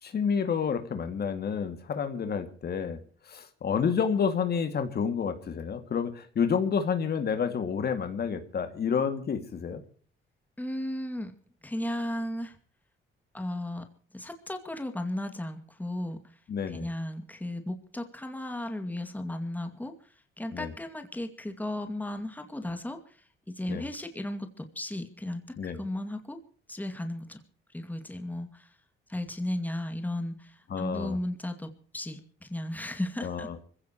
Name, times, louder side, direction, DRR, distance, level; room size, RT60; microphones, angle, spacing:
voice 1, 0.0-3.0 3.3-9.8 16.5-16.9 20.5-20.7 23.7-23.9 25.6-25.8 30.7-31.2 33.2-33.6, left 6 dB, 55° left, 8 dB, 2.4 m, -29 dB
voice 2, 10.6-11.3 11.6-12.6 13.3-13.8 14.1-16.2 16.7-23.2 23.5-26.4 26.7-27.4 27.7-28.7 29.1-33.5, left 1 dB, 10° left, 6 dB, 2.4 m, -35 dB
25.0 x 16.0 x 3.1 m, 0.43 s
cardioid pair, 90°, 20 cm